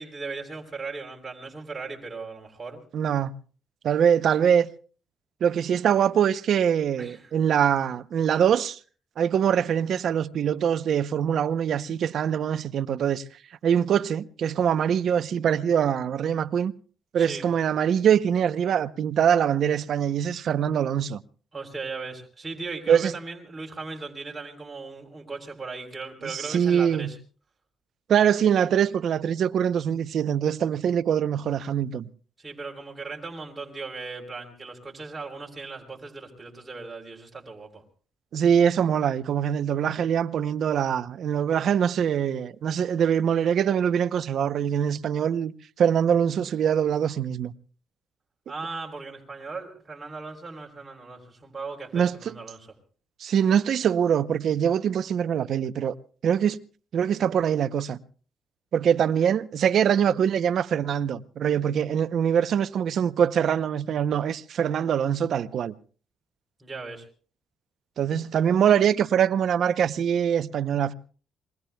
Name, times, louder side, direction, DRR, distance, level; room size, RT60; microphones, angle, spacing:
voice 1, 0.0-2.8 7.0-7.3 17.2-17.5 21.5-27.2 32.4-37.8 48.5-52.7 66.6-67.1, right 4 dB, 25° right, 3.5 m, -38 dB
voice 2, 2.9-3.3 3.8-4.7 5.4-8.8 9.2-13.2 13.6-16.7 17.1-21.2 22.9-23.1 26.2-27.1 28.1-32.1 38.3-47.5 51.9-52.4 53.2-55.9 56.2-56.6 56.9-58.0 58.7-65.7 68.0-70.9, right 8 dB, 65° right, 0.7 m, -23 dB
28.0 x 22.0 x 2.3 m
cardioid pair, 90°, 0 cm